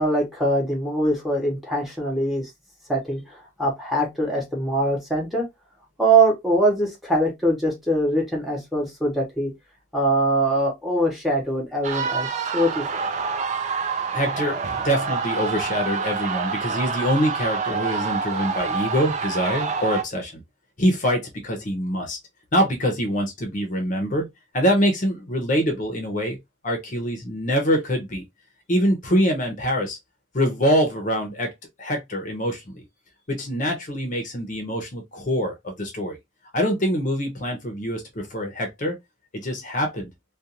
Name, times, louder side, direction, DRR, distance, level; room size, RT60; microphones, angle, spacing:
voice 1, 0.0-2.5 2.9-5.5 6.0-9.5 9.9-12.3 12.5-12.8, right 1 dB, ahead, 0.8 m, -22 dB
sound 1, 11.8-20.0, right 5 dB, 35° right, 0.3 m, -27 dB
voice 2, 14.1-20.4 20.8-22.2 22.5-24.3 24.5-26.4 26.6-28.2 28.7-30.0 30.3-31.5 31.8-32.8 33.3-36.2 36.5-39.0 39.3-40.1, equal, 40° left, 0.7 m, -24 dB
2.5 x 2.3 x 2.8 m
head